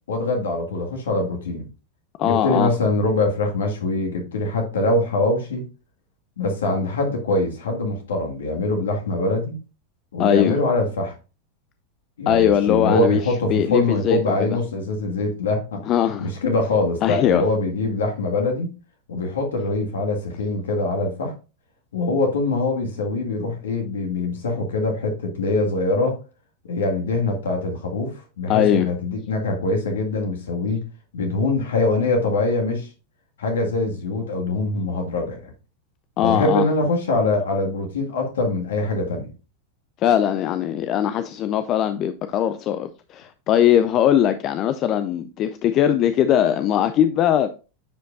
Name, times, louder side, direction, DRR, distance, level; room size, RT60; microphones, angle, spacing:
voice 1, 0.1-1.7 2.2-5.7 6.4-9.6 10.1-11.1 12.2-15.9 16.2-18.7 19.1-21.3 21.9-26.2 26.7-30.8 31.1-32.9 33.4-35.5 36.2-39.3, left 2 dB, 70° left, 2.0 m, -23 dB
voice 2, 2.2-2.7 10.2-10.6 12.3-14.6 15.9-16.3 17.0-17.4 28.5-28.9 36.2-36.7 40.0-47.5, left 10 dB, 40° left, 0.4 m, -20 dB
10.0 x 5.1 x 2.6 m
figure-of-eight pair, 90°, 0 cm